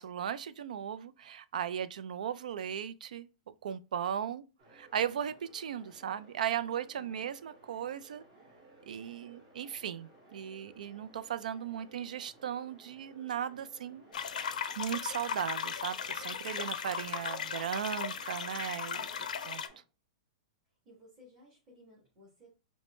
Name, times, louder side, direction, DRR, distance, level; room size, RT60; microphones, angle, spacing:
voice 1, 0.0-3.3 3.6-4.4 4.7-8.2 8.9-14.0 14.8-19.1 19.4-19.6, right 9 dB, 80° right, 0.3 m, -37 dB
sound 1, 4.6-19.8, right 2 dB, 35° right, 1.7 m, -59 dB
sound 2, 14.1-19.7, left 7 dB, 85° left, 0.4 m, -37 dB
voice 2, 20.8-22.5, left 1 dB, 20° right, 1.6 m, -58 dB
4.7 x 2.1 x 3.0 m
hypercardioid pair, 150°, 4 cm